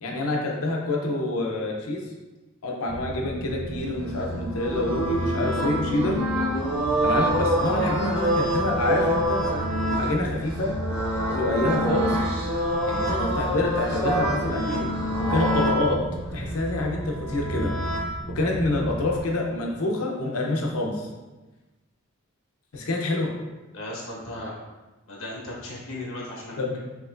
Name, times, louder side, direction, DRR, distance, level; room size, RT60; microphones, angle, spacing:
voice 1, 0.0-2.0 2.6-6.2 7.0-9.4 10.0-10.7 11.3-12.2 12.9-16.0 16.3-17.7 18.3-21.1 22.7-23.3 26.6-26.8, left 2 dB, 90° left, 0 dB, 0.6 m, -27 dB
sound 1, 2.9-19.2, equal, 10° right, 0.4 m, -34 dB
sound 2, 4.1-15.8 16.9-18.0, right 1 dB, 85° right, 1.4 m, -26 dB
voice 2, 23.7-24.5 25.1-26.8, left 1 dB, 75° left, -4 dB, 1.2 m, -36 dB
4.6 x 2.9 x 2.5 m, 1.1 s
head